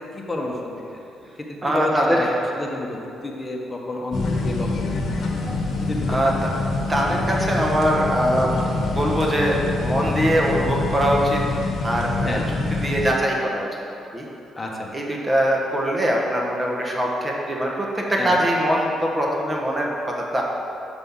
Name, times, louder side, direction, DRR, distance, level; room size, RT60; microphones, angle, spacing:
voice 1, 0.1-1.0 1.6-2.3 2.6-4.9 5.8-6.2 12.2-12.5 14.5-14.9 18.2-18.4, left 2 dB, 20° left, -1 dB, 1.2 m, -30 dB
voice 2, 1.6-2.3 6.1-6.6 6.9-8.5 8.9-11.4 11.8-13.7 14.1-14.2 14.9-20.4, equal, 20° right, -1 dB, 1.3 m, -22 dB
sound 1, 4.1-13.1, left 3 dB, 60° left, 1.1 m, -25 dB
6.2 x 5.4 x 5.7 m, 2.8 s
cardioid pair, 90°, 0 cm